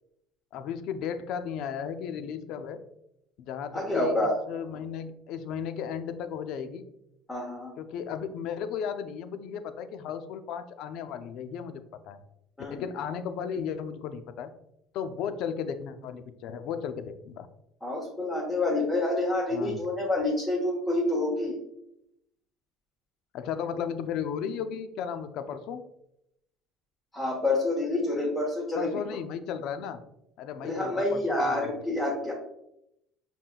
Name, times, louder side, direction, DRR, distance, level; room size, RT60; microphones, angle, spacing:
voice 1, 0.5-2.8 3.4-6.9 7.8-12.2 12.7-14.5 14.9-17.5 19.5-19.8 23.3-25.8 28.8-30.0 30.4-31.7, left 7 dB, 65° left, 10 dB, 0.4 m, -35 dB
voice 2, 3.7-4.4 7.3-7.7 12.6-12.7 17.8-21.5 27.1-28.9 30.6-32.3, left 2 dB, 15° left, -5 dB, 1.2 m, -28 dB
5.7 x 3.7 x 2.3 m, 0.80 s
cardioid pair, 120°, 0 cm